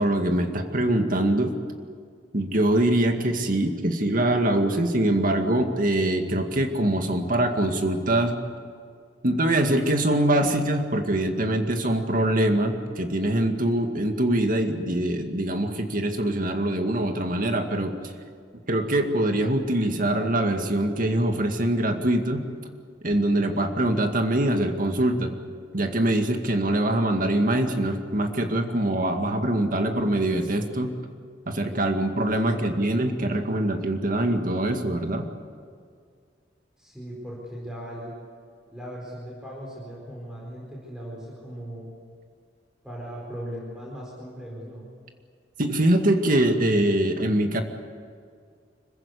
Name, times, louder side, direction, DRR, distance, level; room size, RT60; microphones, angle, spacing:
voice 1, 0.0-1.5 2.3-8.3 9.2-17.9 18.7-22.5 23.0-25.3 25.7-30.9 31.5-35.3 45.6-47.6, right 1 dB, 50° right, 5 dB, 2.1 m, -23 dB
voice 2, 32.4-32.8 36.8-38.1 38.7-41.9 42.8-44.8, equal, 5° right, -4 dB, 4.6 m, -38 dB
26.0 x 15.5 x 9.6 m, 2.2 s
head